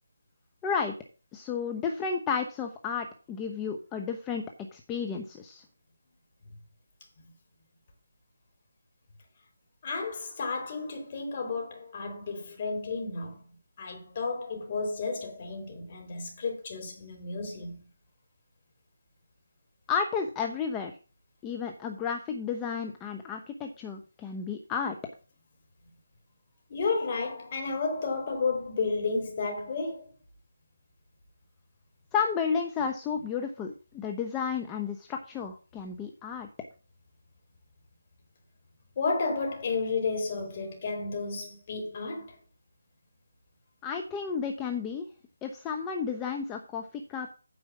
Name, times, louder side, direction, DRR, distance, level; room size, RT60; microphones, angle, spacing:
voice 1, 0.6-0.9 1.3-4.4 4.7-5.6 19.9-20.9 21.4-25.0 32.1-36.5 43.8-45.1 45.4-47.3, left 6 dB, 15° left, 0.8 m, -32 dB
voice 2, 9.8-13.4 13.8-17.9 26.7-30.1 39.0-42.4, left 4 dB, 35° left, 3.7 m, -32 dB
9.4 x 5.0 x 7.2 m
figure-of-eight pair, 160°, 0 cm